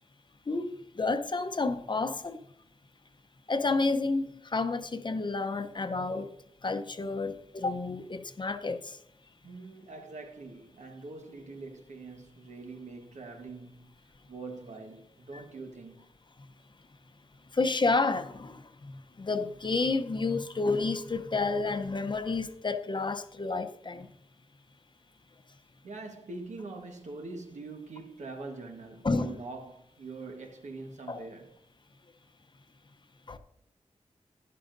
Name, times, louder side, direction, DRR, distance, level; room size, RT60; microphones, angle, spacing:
voice 1, 0.5-2.4 3.5-6.3 6.6-8.9 15.3-15.4 17.5-24.1 29.0-29.4 31.1-31.2 33.3-33.4, left 3 dB, 40° left, 0.7 m, -30 dB
voice 2, 9.4-13.9 14.3-16.1 25.8-31.5, right 3 dB, 90° right, 1.3 m, -43 dB
12.0 x 11.0 x 2.6 m
wide cardioid pair, 80°, 12 cm